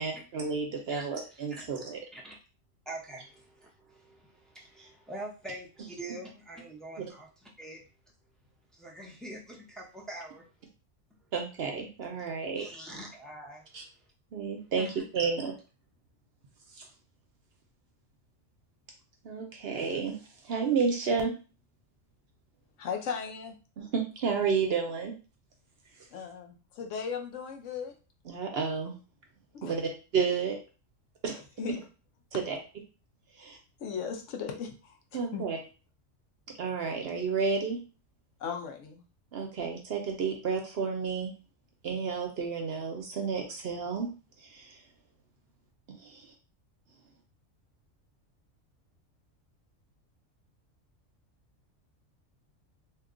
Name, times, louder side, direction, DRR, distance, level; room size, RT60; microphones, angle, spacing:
voice 1, 0.0-2.0 11.3-12.6 13.7-13.8 14.3-14.9 15.1-15.5 19.2-20.2 20.4-21.3 23.8-25.1 28.3-28.9 29.6-30.6 31.2-31.3 32.3-32.6 33.4-33.6 35.1-35.6 36.6-37.8 39.3-41.3 41.8-44.1 44.5-44.8 45.9-46.3, right 5 dB, 60° right, 2 dB, 0.8 m, -31 dB
voice 2, 0.9-1.8 2.1-2.4 2.9-7.8 8.7-10.4 12.5-13.7 14.8-15.0, right 1 dB, ahead, -3 dB, 0.5 m, -45 dB
voice 3, 22.8-23.5 26.1-27.9 29.5-29.7 31.3-31.8 33.8-35.4 38.4-39.0, left 6 dB, 75° left, 4 dB, 1.0 m, -37 dB
2.9 x 2.3 x 3.7 m, 0.34 s
omnidirectional pair, 1.3 m